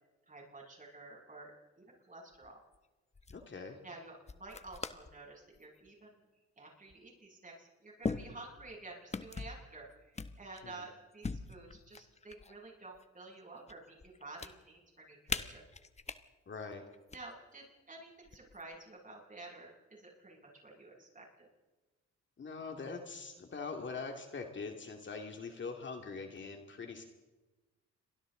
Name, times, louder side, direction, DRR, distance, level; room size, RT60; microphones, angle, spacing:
voice 1, 0.3-2.6 3.8-6.2 6.6-15.6 17.1-21.5, right 2 dB, 25° right, -2 dB, 7.5 m, -51 dB
sound 1, 2.3-2.8 3.1-3.4 4.3-5.1 5.5-5.9 6.9-7.0 8.0-8.8 9.1-9.6 10.2-10.7 11.2-12.6 13.0-13.7 14.0-14.5 15.3-16.2 16.9-17.2 18.2-18.8, left 4 dB, 20° left, 1.1 m, -41 dB
voice 2, 3.3-3.8 10.6-10.8 16.5-16.8 22.4-27.0, left 4 dB, 40° left, 3 dB, 2.4 m, -43 dB
29.0 x 23.5 x 3.9 m, 1.2 s
cardioid pair, 90°, 30 cm